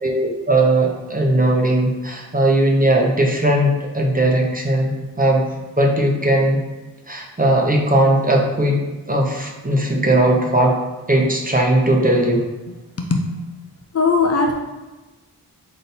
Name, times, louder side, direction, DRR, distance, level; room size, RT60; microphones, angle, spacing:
voice 1, 0.0-5.4 5.8-6.6 7.1-8.8 9.1-10.8 11.1-12.4, right 1 dB, 20° right, 0 dB, 0.8 m, -18 dB
voice 2, 13.9-14.5, left 4 dB, 40° left, 2 dB, 0.5 m, -18 dB
3.8 x 2.6 x 4.2 m, 1.2 s
cardioid pair, 40°, 40 cm